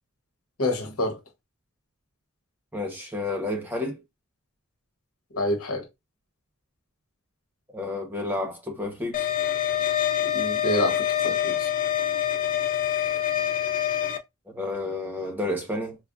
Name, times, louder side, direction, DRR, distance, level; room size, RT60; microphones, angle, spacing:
voice 1, 0.6-1.2 5.3-5.8 10.3-11.7, left 1 dB, 90° left, 1.0 m, -27 dB
voice 2, 2.7-4.0 7.7-9.3 14.5-16.0, left 2 dB, 10° right, 1.0 m, -30 dB
sound 1, 9.1-14.2, left 10 dB, 40° left, 0.4 m, -25 dB
4.8 x 2.2 x 2.5 m
head